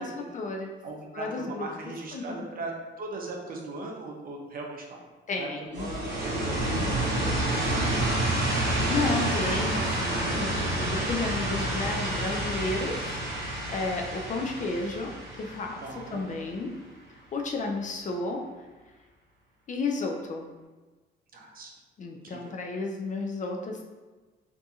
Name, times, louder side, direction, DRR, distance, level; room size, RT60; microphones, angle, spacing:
voice 1, 0.0-0.7 1.1-1.7 2.1-2.2 5.3-5.9 8.9-16.7 17.3-18.4 19.7-20.5 22.0-23.8, left 3 dB, 40° left, 2 dB, 0.4 m, -32 dB
voice 2, 0.8-2.7 3.0-5.0 5.4-8.3 15.8-16.3 21.3-21.7 22.3-22.5, right 2 dB, 45° right, 0 dB, 0.6 m, -39 dB
sound 1, 5.7-16.5, right 1 dB, 70° right, 0.9 m, -29 dB
2.7 x 2.6 x 2.3 m, 1.2 s
cardioid pair, 90°, 20 cm